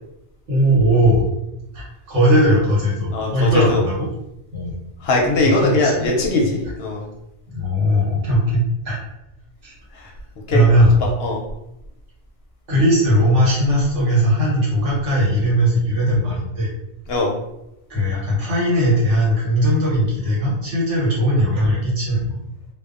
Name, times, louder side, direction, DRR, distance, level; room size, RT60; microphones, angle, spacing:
voice 1, 0.5-1.2 1.7-4.1 4.5-4.7 5.4-6.1 7.5-9.0 9.6-9.7 10.5-10.9 12.7-16.7 17.9-22.4, equal, 80° right, -5 dB, 1.3 m, -18 dB
voice 2, 3.1-3.8 5.0-7.0 10.5-10.6 11.2-11.4 17.1-17.3, left 2 dB, 65° left, -1 dB, 0.7 m, -20 dB
2.6 x 2.1 x 2.4 m, 0.88 s
omnidirectional pair, 1.2 m